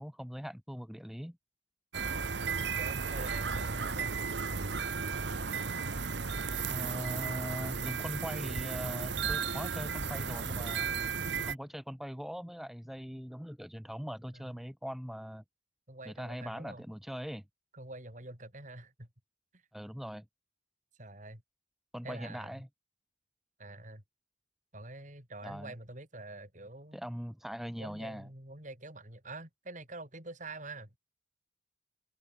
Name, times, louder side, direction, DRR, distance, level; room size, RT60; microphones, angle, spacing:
voice 1, 0.0-1.4 6.7-10.9 11.4-15.4 16.1-17.4 19.7-20.2 21.9-22.7 25.4-25.7 26.9-28.3, equal, ahead, 1.1 m, -41 dB
sound 1, 1.9-11.5, right 5 dB, 70° right, 1.2 m, -34 dB
voice 2, 2.8-4.2 14.3-14.6 15.9-16.8 17.7-19.1 19.5-19.6 21.0-21.4 22.0-22.6 23.6-24.0 24.7-27.0 27.8-30.9, right 2 dB, 45° right, 7.0 m, -46 dB
open air
head